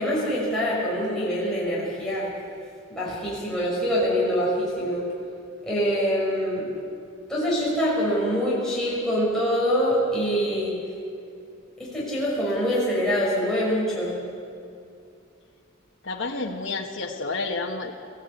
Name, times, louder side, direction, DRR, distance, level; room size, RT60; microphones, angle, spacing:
voice 1, 0.0-2.3 2.9-5.0 5.6-6.7 7.3-10.8 11.8-14.2, equal, 5° left, -8 dB, 6.3 m, -24 dB
voice 2, 16.0-17.9, left 3 dB, 65° left, 0 dB, 1.5 m, -30 dB
23.0 x 16.0 x 8.5 m, 2.5 s
head